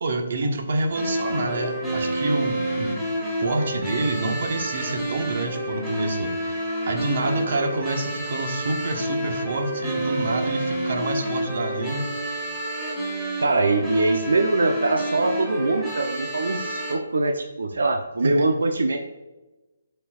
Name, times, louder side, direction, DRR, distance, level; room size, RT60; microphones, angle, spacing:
voice 1, 0.0-2.9 3.4-12.1 18.2-18.5, right 2 dB, 55° right, 3 dB, 1.3 m, -27 dB
sound 1, 0.9-16.9, right 1 dB, 5° right, 1.9 m, -29 dB
voice 2, 13.4-19.0, right 3 dB, 90° right, 4 dB, 0.7 m, -23 dB
12.5 x 4.5 x 2.5 m, 1.1 s
hypercardioid pair, 165°, 0 cm